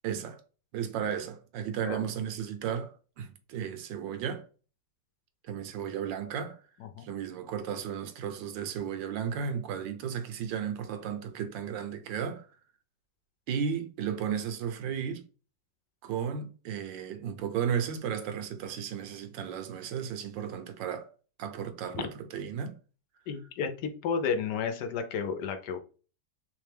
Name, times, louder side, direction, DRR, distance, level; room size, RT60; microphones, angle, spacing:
voice 1, 0.0-0.4 0.7-4.5 5.4-6.6 7.0-12.5 13.5-15.2 16.0-21.1 21.4-22.8, right 8 dB, 90° right, 1.4 m, -34 dB
voice 2, 23.3-25.8, left 6 dB, 75° left, 1.2 m, -32 dB
3.4 x 3.3 x 3.4 m
omnidirectional pair, 1.9 m